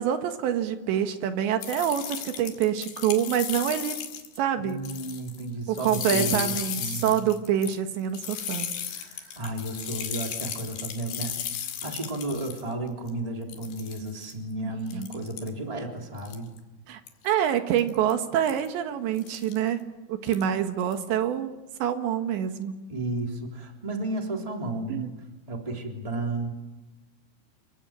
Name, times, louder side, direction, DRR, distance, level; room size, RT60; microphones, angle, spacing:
voice 1, 0.0-4.0 4.4-4.8 5.7-9.1 14.9-15.1 16.9-19.8 20.1-21.5 21.8-22.9 24.9-25.1, right 9 dB, 70° right, 7 dB, 3.7 m, -26 dB
sound 1, 1.6-4.4 4.7-5.5 5.7-12.6 13.1-13.2 13.5-14.3 14.9-15.5 16.2-16.6 17.1-17.3 17.8-18.1 18.5-18.7 19.2-19.6 20.2-20.4 20.8-21.0, left 9 dB, 70° left, 4.3 m, -35 dB
voice 2, 4.6-6.5 6.8-7.2 9.3-16.5 22.9-25.1 25.5-26.5, right 2 dB, 10° right, 1 dB, 2.8 m, -33 dB
28.0 x 23.5 x 8.9 m, 1.1 s
omnidirectional pair, 5.5 m